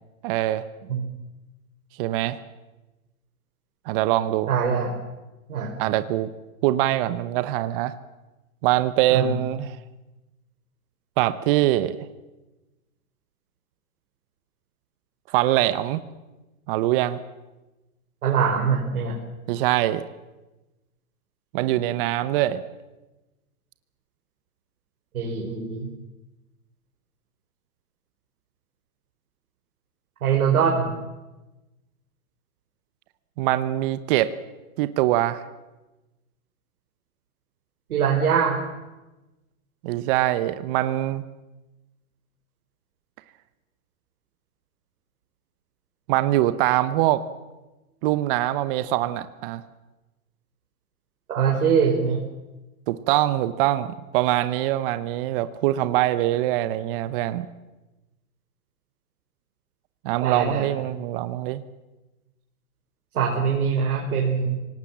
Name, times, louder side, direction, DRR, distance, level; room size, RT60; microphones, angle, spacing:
voice 1, 0.2-0.6 2.0-2.4 3.9-4.5 5.8-6.3 6.6-7.9 8.6-9.8 11.2-12.0 15.3-16.0 16.7-17.2 19.5-20.0 21.5-22.6 33.4-34.4 34.8-35.4 39.8-41.2 46.1-47.2 48.0-49.6 52.9-57.5 60.0-61.6, right 14 dB, 40° right, 13 dB, 1.0 m, -23 dB
voice 2, 4.5-4.9 5.5-5.8 9.1-9.3 18.2-19.2 25.1-25.9 30.2-30.9 37.9-38.6 51.3-52.2 60.2-60.7 63.1-64.5, right 6 dB, 75° right, 0 dB, 4.7 m, -23 dB
27.0 x 18.5 x 7.4 m, 1.1 s
hypercardioid pair, 145°, 43 cm